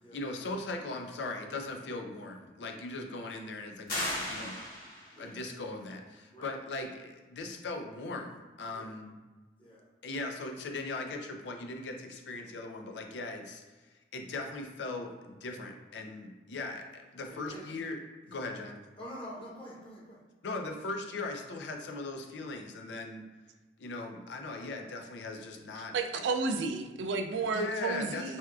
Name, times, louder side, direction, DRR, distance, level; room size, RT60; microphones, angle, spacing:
voice 1, 0.1-4.6 5.2-9.2 10.0-13.6 14.1-18.0 18.3-18.8 20.4-23.2 23.8-26.2 27.5-28.4, left 2 dB, 80° left, 4 dB, 0.5 m, -39 dB
sound 1, 3.9-5.3, left 1 dB, 55° left, 1.3 m, -35 dB
voice 2, 17.3-17.7 18.3-18.5 19.0-20.2 27.3-27.6, equal, 30° left, -5 dB, 0.9 m, -47 dB
voice 3, 25.9-28.4, right 4 dB, 90° right, 6 dB, 0.3 m, -32 dB
4.2 x 2.3 x 2.3 m, 1.2 s
head